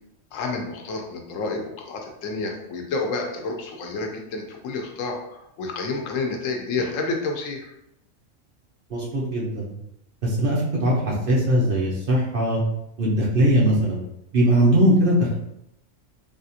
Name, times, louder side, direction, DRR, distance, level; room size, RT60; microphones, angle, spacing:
voice 1, 0.3-7.7, left 3 dB, 85° left, 2 dB, 1.0 m, -29 dB
voice 2, 8.9-9.7 10.2-12.6 13.0-14.0 14.3-15.3, equal, 50° right, -4 dB, 0.8 m, -20 dB
3.5 x 2.4 x 2.7 m, 0.81 s
omnidirectional pair, 1.3 m